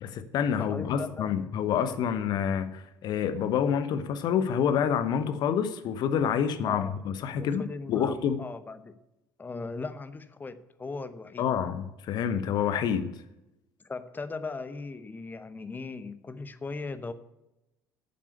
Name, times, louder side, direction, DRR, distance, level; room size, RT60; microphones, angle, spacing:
voice 1, 0.0-8.4 11.4-13.1, left 8 dB, 45° left, 1.0 m, -28 dB
voice 2, 0.6-1.3 6.7-6.9 7.4-8.9 9.4-11.5 13.8-17.1, left 3 dB, 20° left, 0.9 m, -38 dB
9.6 x 7.3 x 8.2 m
figure-of-eight pair, 60°, 10 cm